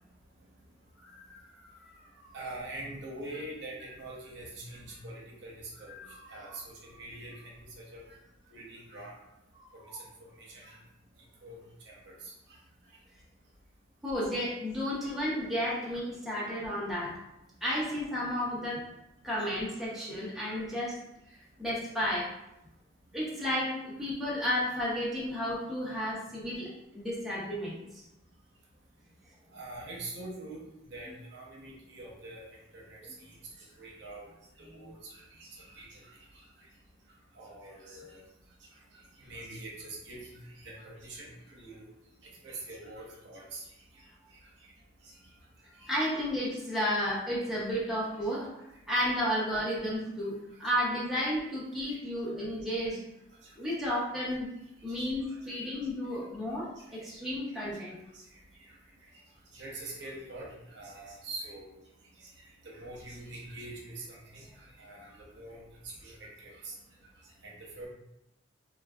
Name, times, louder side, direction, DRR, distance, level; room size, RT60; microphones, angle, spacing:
voice 1, 1.0-2.0 5.9-6.3 9.6-10.0 14.0-17.2 17.6-18.8 19.2-21.0 21.6-22.3 23.1-28.0 45.8-53.0 53.6-54.5 54.8-58.0, equal, ahead, -7 dB, 0.6 m, -33 dB
voice 2, 2.3-5.5 5.8-6.0 6.3-7.6 7.9-8.0 8.5-9.1 10.0-10.1 10.4-10.8 11.4-11.6 11.9-12.3 20.4-20.6 29.5-30.6 30.9-33.3 33.8-34.3 34.6-36.1 36.3-36.4 37.4-38.2 39.2-41.9 42.4-43.6 44.6-44.7 45.0-45.1 45.8-46.1 51.9-52.0 53.4-53.5 58.1-58.2 59.5-61.7 62.2-62.3 62.6-64.5 64.8-65.6 66.0-66.7 67.4-67.9, right 2 dB, 65° right, -4 dB, 0.7 m, -44 dB
3.7 x 2.2 x 2.3 m, 0.87 s
head